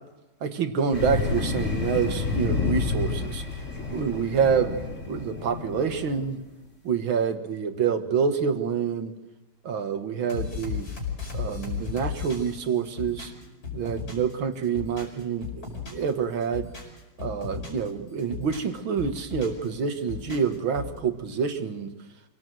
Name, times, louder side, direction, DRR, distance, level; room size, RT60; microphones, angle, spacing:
voice 1, 0.4-3.4 3.9-4.8 5.1-6.4 6.8-9.1 9.6-10.9 11.3-13.3 13.7-16.7 17.2-21.9, right 6 dB, 75° right, 8 dB, 2.3 m, -27 dB
sound 1, 0.9-6.3, left 4 dB, 35° left, 3.9 m, -29 dB
sound 2, 10.3-14.3 14.6-16.1 16.4-17.9 18.2-19.7 20.0-21.0, left 6 dB, 75° left, 6.4 m, -35 dB
25.5 x 18.0 x 7.8 m, 1.1 s
omnidirectional pair, 2.3 m